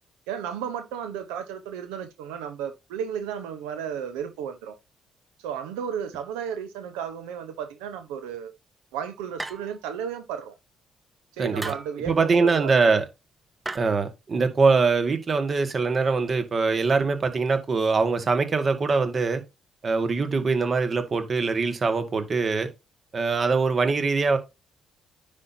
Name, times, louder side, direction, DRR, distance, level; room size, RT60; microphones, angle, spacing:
voice 1, 0.3-4.8 5.4-8.5 8.9-10.5 11.3-13.0, right 8 dB, 80° right, 1.0 m, -34 dB
sound 1, 9.4-9.9 11.6-12.0 13.6-13.8, right 2 dB, 20° right, 1.1 m, -35 dB
voice 2, 11.4-11.7 12.1-13.1 13.7-19.4 19.8-22.7 23.1-24.4, right 4 dB, 45° right, 1.8 m, -23 dB
9.8 x 5.6 x 2.8 m
hypercardioid pair, 45°, 0 cm